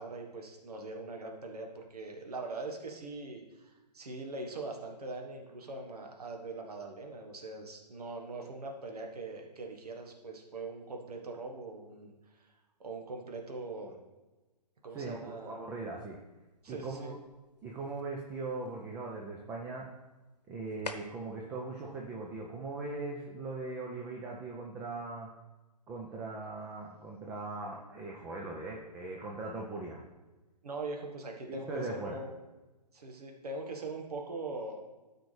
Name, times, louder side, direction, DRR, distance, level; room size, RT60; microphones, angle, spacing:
voice 1, 0.0-12.5 12.8-14.0 14.8-15.6 16.6-17.1 30.6-32.3 32.9-34.8, right 3 dB, 65° right, 2 dB, 1.4 m, -42 dB
voice 2, 14.9-16.2 16.7-17.2 17.6-19.9 20.5-25.3 25.9-30.1 31.5-32.2, right 3 dB, 10° right, -1 dB, 0.5 m, -40 dB
sound 1, 15.3-23.2, left 4 dB, 75° left, 0.9 m, -52 dB
13.0 x 4.8 x 3.3 m, 1.1 s
figure-of-eight pair, 130°, 21 cm